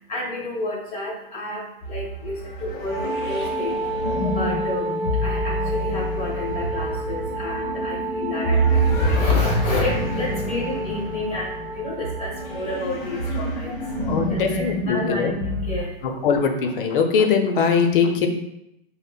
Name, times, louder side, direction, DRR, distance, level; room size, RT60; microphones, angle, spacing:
voice 1, 0.0-16.3, left 1 dB, 20° left, -3 dB, 1.4 m, -30 dB
sound 1, 1.8-15.8, equal, 45° left, 1.0 m, -27 dB
Wind instrument woodwind instrument, 2.9-12.9, right 1 dB, 75° right, 0.7 m, -31 dB
voice 2, 14.1-15.3 16.0-18.3, left 5 dB, 65° left, 5 dB, 0.7 m, -21 dB
5.2 x 2.1 x 2.4 m, 0.80 s
hypercardioid pair, 130°, 29 cm